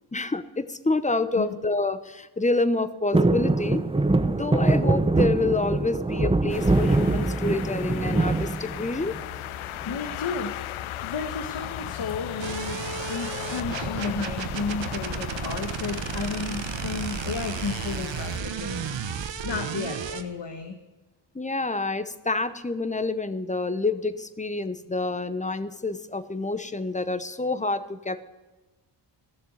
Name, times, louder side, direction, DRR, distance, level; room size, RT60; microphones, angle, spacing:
voice 1, 0.1-3.9 4.3-9.2 21.3-28.2, left 3 dB, 15° left, 13 dB, 0.9 m, -28 dB
sound 1, 3.1-9.3 9.7-10.3 11.6-12.0 12.3-12.4 12.7-13.0 13.8-14.7 15.2-15.3, right 2 dB, 10° right, 0.8 m, -24 dB
sound 2, 6.5-18.4, left 14 dB, 85° left, 0.6 m, -37 dB
voice 2, 9.8-10.6 11.0-12.8 13.1-18.8 19.4-20.8, left 5 dB, 60° left, 5 dB, 1.5 m, -33 dB
sound 3, 12.4-20.2, right 7 dB, 65° right, 1.2 m, -33 dB
15.0 x 7.0 x 9.4 m, 1.2 s
cardioid pair, 70°, 47 cm